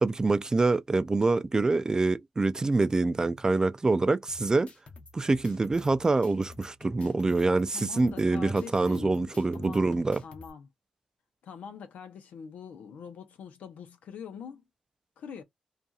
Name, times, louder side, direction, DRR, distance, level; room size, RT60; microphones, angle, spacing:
voice 1, 0.0-4.7 5.1-10.2, right 3 dB, 25° right, 0.3 m, -25 dB
sound 1, 4.3-10.5, left 3 dB, 55° left, 0.9 m, -50 dB
voice 2, 7.7-10.7 11.4-14.6 15.2-15.4, left 7 dB, 85° left, 0.7 m, -44 dB
2.7 x 2.4 x 2.4 m
cardioid pair, 65°, 2 cm